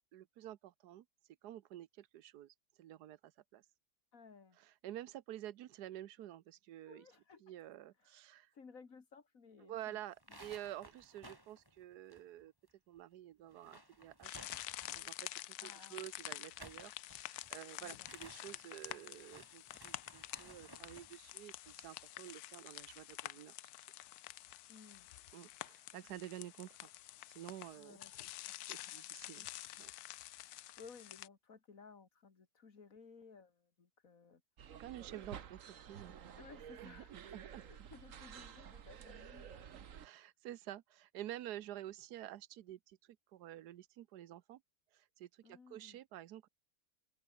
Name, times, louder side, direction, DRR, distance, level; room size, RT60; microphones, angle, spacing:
voice 1, 0.1-1.0 1.4-3.6 4.6-7.0 7.4-8.5 9.6-12.5 12.9-14.5 14.9-23.7 25.3-26.9 27.3-28.2 28.6-29.5 29.8-29.9 34.8-36.1 36.8-37.9 39.9-44.6 44.9-46.5, right 13 dB, 85° right, 1.3 m, -50 dB
voice 2, 4.1-4.6 6.8-7.5 8.0-10.0 10.3-10.4 15.6-16.1 17.8-18.1 24.7-25.1 27.8-28.6 30.5-34.4 36.4-39.8 45.4-46.0, left 5 dB, 60° left, 2.5 m, -59 dB
sound 1, 10.1-12.7 13.0-13.1 13.4-15.2 16.3-21.2, equal, 15° right, 6.4 m, -58 dB
sound 2, 14.2-31.3, left 15 dB, 80° left, 1.1 m, -49 dB
sound 3, 34.6-40.1, right 8 dB, 60° right, 1.4 m, -52 dB
open air
omnidirectional pair, 1.7 m